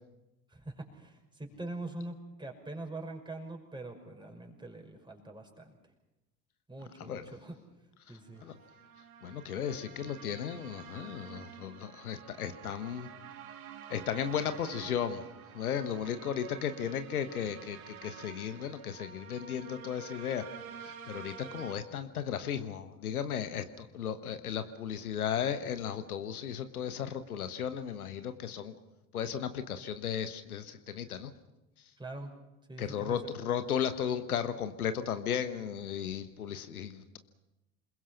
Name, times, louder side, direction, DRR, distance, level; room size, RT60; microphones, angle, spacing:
voice 1, 0.5-5.8 6.7-7.6 8.1-8.5 32.0-32.3 32.7-33.2, right 2 dB, 10° right, 2 dB, 5.7 m, -43 dB
sound 1, 8.4-21.7, right 8 dB, 70° right, 2.0 m, -49 dB
voice 2, 9.2-13.1 13.9-15.2 15.5-20.4 20.8-28.7 29.1-31.3 32.8-37.2, left 8 dB, 80° left, 10 dB, 1.2 m, -35 dB
27.5 x 21.5 x 5.8 m, 0.96 s
figure-of-eight pair, 65°, 43 cm